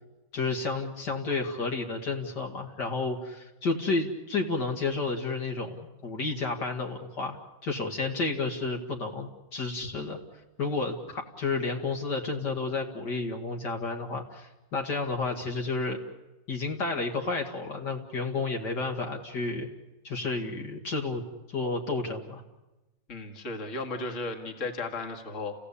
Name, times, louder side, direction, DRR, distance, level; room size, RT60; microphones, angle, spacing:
voice 1, 0.3-10.2 10.6-16.0 16.5-19.7 20.0-21.2 21.5-22.4, left 3 dB, 65° left, 2 dB, 2.5 m, -31 dB
voice 2, 23.1-25.5, left 3 dB, 40° left, 4 dB, 2.3 m, -35 dB
29.5 x 16.5 x 8.5 m, 1.0 s
omnidirectional pair, 2.0 m